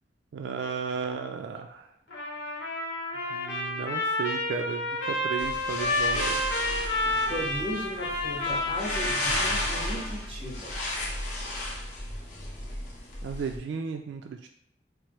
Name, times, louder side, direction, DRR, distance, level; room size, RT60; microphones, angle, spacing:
voice 1, 0.3-1.8 3.3-6.4 13.2-14.5, right 5 dB, 90° right, 5 dB, 0.3 m, -34 dB
Trumpet, 2.1-10.1, left 1 dB, 75° left, 0.8 m, -30 dB
sound 1, 5.4-13.6, left 1 dB, 45° left, 0.8 m, -34 dB
voice 2, 7.3-10.8, equal, 30° right, -4 dB, 1.1 m, -36 dB
4.3 x 2.0 x 3.0 m, 0.69 s
head